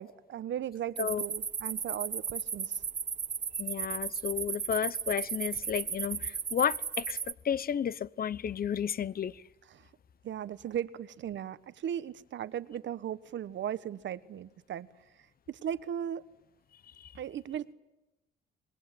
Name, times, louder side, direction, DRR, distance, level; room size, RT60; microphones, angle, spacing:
voice 1, 0.0-2.8 9.7-9.9 10.2-14.9 15.5-16.2 17.1-17.7, right 10 dB, 65° right, 1.3 m, -37 dB
sound 1, 1.0-7.3, right 6 dB, 40° right, 1.4 m, -35 dB
voice 2, 3.6-9.4 17.0-17.1, left 8 dB, 50° left, 1.0 m, -32 dB
26.5 x 21.0 x 9.2 m
cardioid pair, 90°, 20 cm